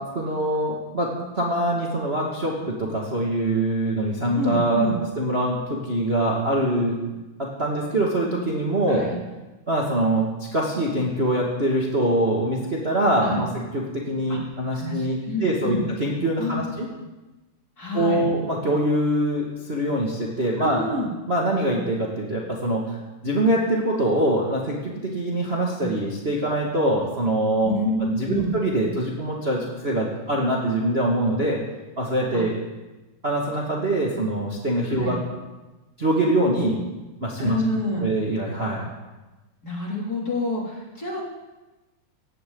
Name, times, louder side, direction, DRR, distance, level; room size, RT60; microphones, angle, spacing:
voice 1, 0.0-4.9 5.2-7.0 7.4-9.1 9.7-13.5 13.7-16.9 17.9-20.8 21.3-23.0 23.2-27.7 28.0-31.6 32.0-32.5 33.2-35.2 36.0-36.8 37.2-37.6 38.0-38.8, right 1 dB, 25° right, -3 dB, 1.8 m, -24 dB
voice 2, 4.3-4.9 8.9-9.1 13.2-13.4 14.3-14.4 14.7-15.8 16.4-16.6 17.8-18.2 20.6-21.1 27.6-28.5 32.3-32.4 34.9-35.2 37.4-38.1 38.8-38.9 39.6-41.2, left 2 dB, 30° left, -3 dB, 3.2 m, -28 dB
18.0 x 16.0 x 3.9 m, 1.1 s
omnidirectional pair, 3.5 m